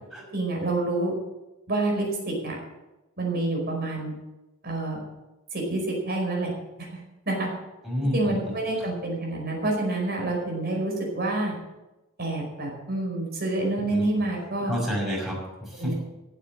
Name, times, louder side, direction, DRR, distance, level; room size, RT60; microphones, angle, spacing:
voice 1, 0.3-1.1 1.7-2.5 3.2-4.1 4.6-5.0 5.5-6.5 6.8-7.0 7.2-7.5 8.1-11.5 12.2-14.7 15.8-15.9, right 2 dB, 50° right, 0 dB, 5.0 m, -27 dB
voice 2, 7.8-8.4 8.8-8.9 13.9-14.0 14.6-15.9, equal, ahead, -4 dB, 6.0 m, -29 dB
15.0 x 7.9 x 7.5 m, 1.0 s
head